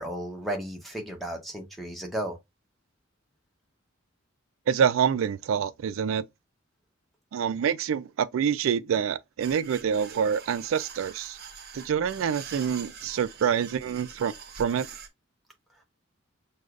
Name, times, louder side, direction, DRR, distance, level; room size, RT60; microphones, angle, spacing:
voice 1, 0.0-2.4, right 1 dB, ahead, 0.9 m, -34 dB
voice 2, 4.7-6.2 7.3-11.4 11.7-14.9, right 7 dB, 75° right, 0.3 m, -26 dB
sound 1, 9.4-15.1, right 6 dB, 50° right, 0.7 m, -45 dB
6.3 x 2.3 x 2.4 m
head